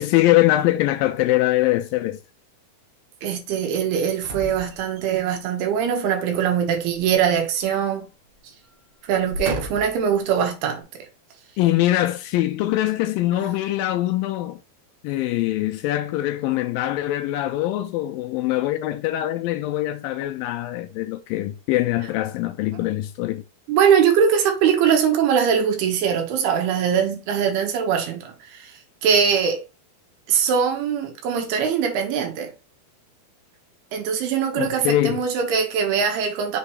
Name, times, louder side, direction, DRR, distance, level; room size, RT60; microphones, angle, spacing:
voice 1, 0.0-2.2 11.6-14.6 15.0-23.4 34.6-35.3, left 15 dB, 80° left, 2.1 m, -23 dB
voice 2, 3.2-8.1 9.1-10.8 13.3-13.5 22.7-22.8 23.7-28.7 29.0-29.6 30.3-32.5 33.9-36.6, right 7 dB, 90° right, 3.3 m, -22 dB
sound 1, 4.2-5.3 6.9-8.0 8.3-8.5 9.1-10.1 10.7-10.8, right 1 dB, 60° right, 2.4 m, -35 dB
6.8 x 3.1 x 4.7 m
omnidirectional pair, 4.4 m